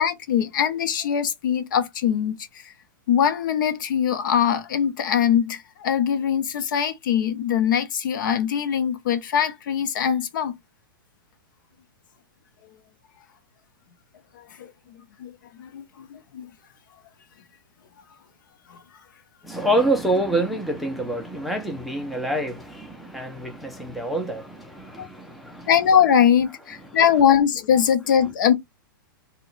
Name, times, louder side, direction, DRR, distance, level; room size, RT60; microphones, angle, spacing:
voice 1, 0.0-2.4 2.6-2.7 3.1-10.5 14.4-14.7 15.2-15.3 15.6-16.5 18.7-18.8 25.0-25.1 25.7-28.5, left 8 dB, 65° left, 0.7 m, -22 dB
voice 2, 19.4-25.7, right 1 dB, ahead, 0.3 m, -26 dB
2.8 x 2.1 x 3.8 m
supercardioid pair, 165°, 12 cm